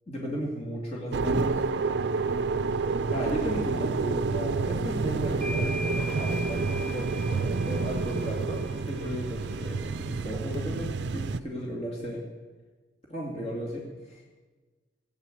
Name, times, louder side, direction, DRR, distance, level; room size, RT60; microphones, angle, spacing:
voice 1, 0.1-1.6 3.0-12.2 13.1-14.2, equal, 30° left, -3 dB, 2.4 m, -35 dB
sound 1, 1.1-11.4, right 4 dB, 55° right, 0.5 m, -29 dB
sound 2, 4.8-4.9 5.4-10.2, equal, 5° left, 3.5 m, -39 dB
17.0 x 9.0 x 7.8 m, 1.3 s
head